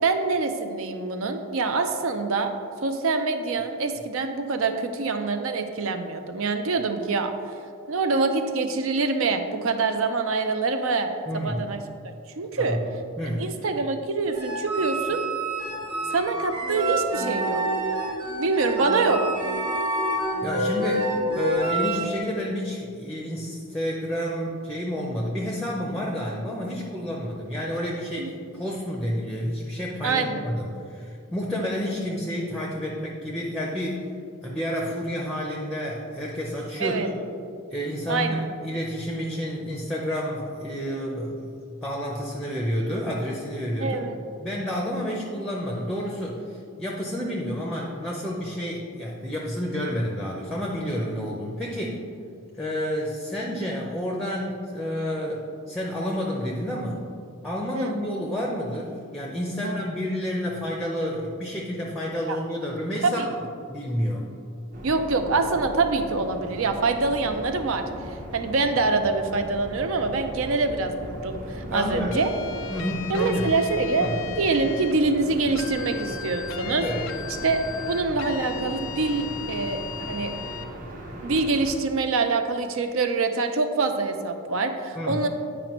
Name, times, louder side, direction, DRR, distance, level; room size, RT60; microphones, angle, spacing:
voice 1, 0.0-2.5 2.8-7.3 7.9-11.1 11.3-11.8 12.4-12.8 13.4-15.2 16.1-17.6 18.4-19.2 28.2-28.3 30.0-30.4 36.8-37.1 38.1-38.4 43.8-44.2 57.8-57.9 59.6-59.8 62.3-62.4 63.0-63.3 64.8-72.3 73.1-74.1 74.4-76.9 77.4-79.8 80.1-80.3 81.2-85.3, right 3 dB, 70° right, 7 dB, 0.5 m, -25 dB
voice 2, 11.3-11.7 12.6-12.8 13.2-13.5 20.4-34.1 34.4-37.1 37.7-41.5 41.8-44.1 44.4-52.0 52.6-57.0 57.4-63.3 63.7-64.3 71.7-72.2 72.7-73.6 74.0-74.2 76.8-77.0 85.0-85.2, equal, 5° left, -2 dB, 0.6 m, -30 dB
sound 1, 14.3-22.2, right 1 dB, 90° right, 1.3 m, -27 dB
sound 2, 64.7-81.7, equal, 35° right, 0.8 m, -38 dB
sound 3, 72.1-75.0 75.6-80.7, left 9 dB, 60° left, 0.3 m, -37 dB
9.1 x 5.0 x 3.0 m, 2.4 s
head